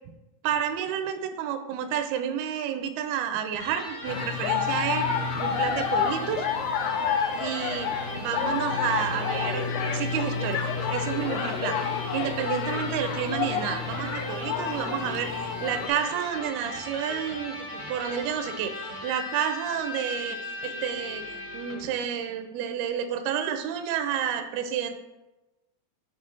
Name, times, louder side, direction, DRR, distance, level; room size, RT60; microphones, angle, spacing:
voice 1, 0.4-5.1 5.4-6.5 7.4-9.6 9.9-10.6 10.9-11.8 12.1-21.2 21.5-24.9, right 9 dB, 90° right, 8 dB, 2.5 m, -30 dB
Electric guitar, 3.5-21.9, left 2 dB, 70° left, 1.1 m, -38 dB
sound 1, 4.1-15.9, left 6 dB, 85° left, 1.7 m, -29 dB
10.0 x 3.9 x 3.7 m, 1.0 s
omnidirectional pair, 4.3 m